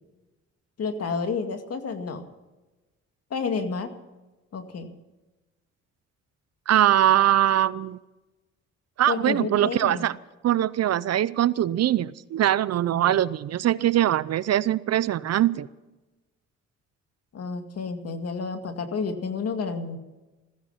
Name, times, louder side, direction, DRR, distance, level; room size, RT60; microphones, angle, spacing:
voice 1, 0.8-2.2 3.3-3.9 4.5-4.9 9.1-10.1 12.9-13.1 17.3-20.0, left 5 dB, 55° left, 6 dB, 2.2 m, -30 dB
voice 2, 6.7-8.0 9.0-10.2 10.4-15.7, right 12 dB, 55° right, 18 dB, 0.6 m, -22 dB
15.5 x 15.5 x 5.7 m, 1.1 s
cardioid pair, 90°, 30 cm